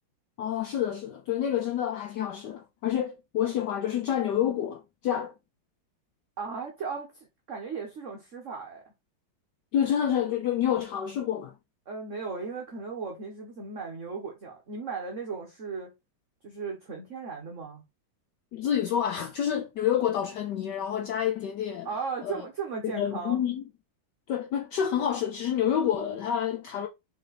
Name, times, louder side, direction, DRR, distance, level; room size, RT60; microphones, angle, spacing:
voice 1, 0.4-5.3 9.7-11.5 18.5-21.9 22.2-22.4 22.8-23.6 24.3-26.9, left 9 dB, 65° left, 1.1 m, -28 dB
voice 2, 6.4-8.8 11.9-15.9 16.4-17.8 21.8-23.4, right 5 dB, 40° right, 1.3 m, -36 dB
6.3 x 4.0 x 4.2 m
omnidirectional pair, 2.3 m